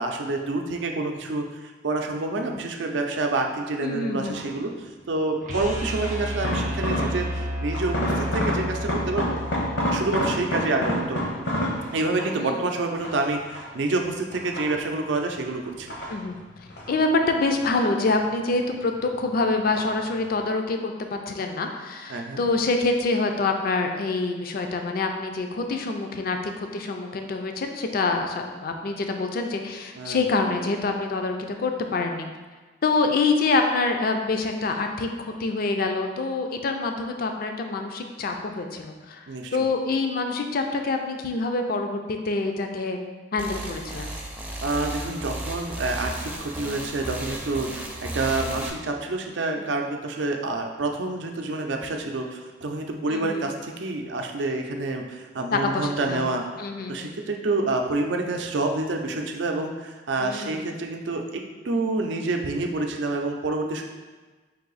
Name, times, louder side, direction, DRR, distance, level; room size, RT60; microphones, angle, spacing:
voice 1, 0.0-9.4 9.9-11.2 11.9-16.0 22.1-22.4 30.0-30.3 39.3-39.6 44.6-56.4 56.9-63.8, right 2 dB, 80° right, 3 dB, 0.5 m, -28 dB
voice 2, 3.8-4.4 12.4-12.6 16.1-16.4 16.9-32.3 32.8-43.0 43.3-44.1 49.6-49.7 53.1-53.4 55.5-56.3 56.6-57.2 60.2-60.6, left 3 dB, 55° left, 4 dB, 0.4 m, -26 dB
sound 1, 4.3-4.7 5.5-7.4 7.7-12.5 13.0-13.9 14.3-15.1 15.6-17.0 17.3-18.4 18.7-19.3 19.7-20.1 20.4-20.5, left 1 dB, 70° left, 0.8 m, -29 dB
sound 2, 5.4-11.5, equal, 45° right, 0.7 m, -32 dB
sound 3, 43.4-48.7, right 1 dB, 10° right, 0.5 m, -34 dB
4.7 x 2.7 x 3.9 m, 1.3 s
head